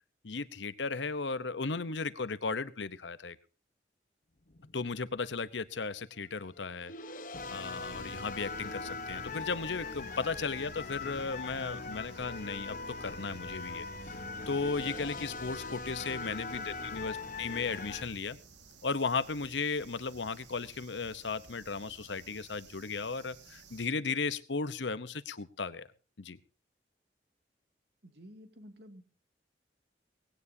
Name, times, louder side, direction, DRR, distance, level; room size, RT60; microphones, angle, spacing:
voice 1, 0.2-3.4 4.7-6.9 7.5-18.4 18.8-25.9 26.2-26.4, left 4 dB, 85° left, 15 dB, 0.9 m, -35 dB
sound 1, 4.5-5.7 6.5-18.0, left 4 dB, 50° left, 1.1 m, -41 dB
sound 2, 7.4-23.9, right 4 dB, 85° right, 1.9 m, -57 dB
sound 3, 7.7-18.2, equal, 65° left, 2.9 m, -53 dB
voice 2, 28.0-29.0, equal, 65° right, 7 dB, 2.4 m, -53 dB
19.0 x 17.0 x 2.8 m, 0.35 s
head